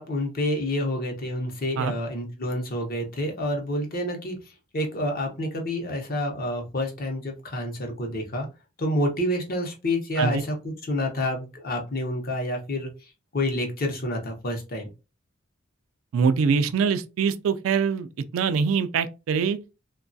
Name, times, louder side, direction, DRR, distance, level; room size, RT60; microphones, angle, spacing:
voice 1, 0.0-8.5 8.8-12.9 13.3-14.9, left 1 dB, 45° left, 0.7 m, -28 dB
voice 2, 16.1-18.1 18.3-19.6, right 6 dB, 70° right, 0.3 m, -23 dB
3.0 x 2.3 x 2.5 m
head